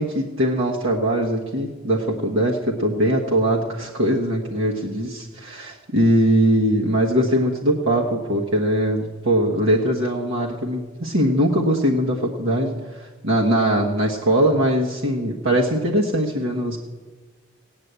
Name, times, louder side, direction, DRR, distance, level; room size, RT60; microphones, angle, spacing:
voice 1, 0.0-16.8, right 1 dB, 65° right, -2 dB, 1.4 m, -21 dB
17.0 x 9.5 x 8.1 m, 1.4 s
head